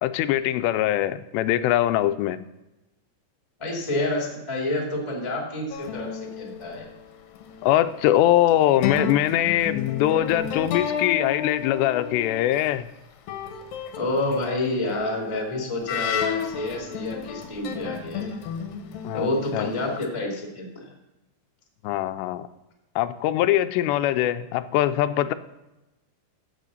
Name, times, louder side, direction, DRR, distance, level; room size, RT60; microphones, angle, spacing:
voice 1, 0.0-2.4 7.6-12.9 19.0-19.7 21.8-22.5 23.0-25.3, left 13 dB, 90° left, 11 dB, 2.7 m, -22 dB
voice 2, 3.6-6.8 13.9-18.4 19.1-20.9, left 2 dB, 10° left, -1 dB, 1.3 m, -28 dB
sound 1, 5.7-8.1 8.8-12.6 13.3-20.1, left 7 dB, 70° left, 2.4 m, -33 dB
14.0 x 7.6 x 4.1 m, 0.99 s
omnidirectional pair, 4.8 m